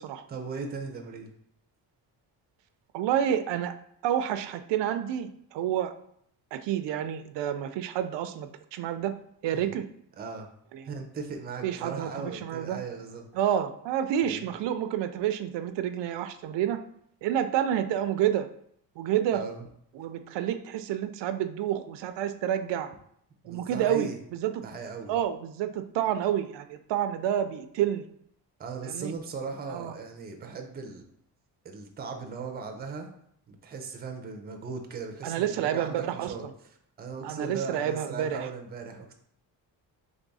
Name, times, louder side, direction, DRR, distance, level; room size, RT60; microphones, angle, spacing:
voice 1, 0.3-1.3 9.5-9.7 10.2-10.5 10.9-13.3 14.2-14.5 19.3-19.6 23.4-24.2 24.6-25.1 28.6-31.0 31.6-33.1 33.5-36.4 37.0-39.1, right 5 dB, 25° right, 4 dB, 0.5 m, -38 dB
voice 2, 2.9-3.7 4.0-5.9 6.5-9.1 9.4-9.8 10.7-10.9 11.6-12.8 13.3-16.8 17.2-18.5 19.0-19.4 19.9-22.9 23.4-24.6 25.1-28.0 28.8-29.1 29.7-29.9 35.2-36.3 37.2-38.5, right 10 dB, 90° right, 10 dB, 0.5 m, -29 dB
3.5 x 3.5 x 4.0 m, 0.68 s
cardioid pair, 180°, 42 cm